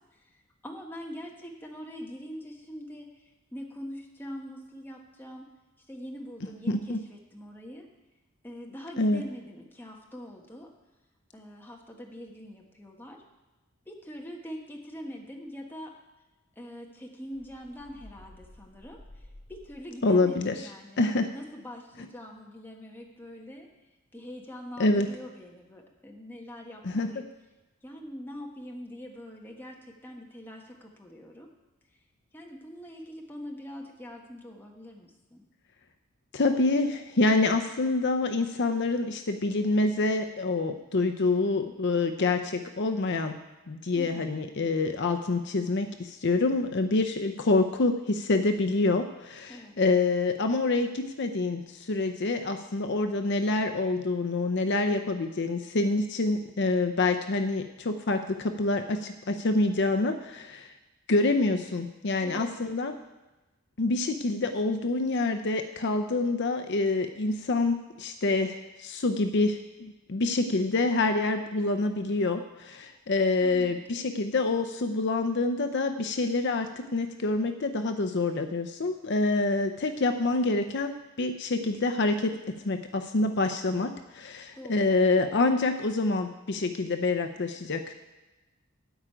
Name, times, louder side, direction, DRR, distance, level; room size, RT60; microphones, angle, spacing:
voice 1, 0.2-5.5 5.9-7.9 8.4-10.7 11.3-13.2 13.8-15.9 16.6-21.0 21.3-23.7 24.1-27.3 27.8-31.5 32.3-35.4 43.9-44.3 49.5-49.8 62.2-62.7 73.4-74.0 84.5-85.0, equal, 10° left, 0 dB, 1.4 m, -43 dB
voice 2, 6.7-7.0 9.0-9.2 20.0-20.6 21.0-21.3 24.8-25.1 26.8-27.2 36.3-43.4 43.7-60.7 61.1-62.9 63.8-87.9, left 3 dB, 55° left, 7 dB, 0.6 m, -27 dB
sound 1, 17.3-20.1, left 1 dB, 35° left, 4.1 m, -52 dB
13.0 x 5.0 x 8.8 m, 1.1 s
head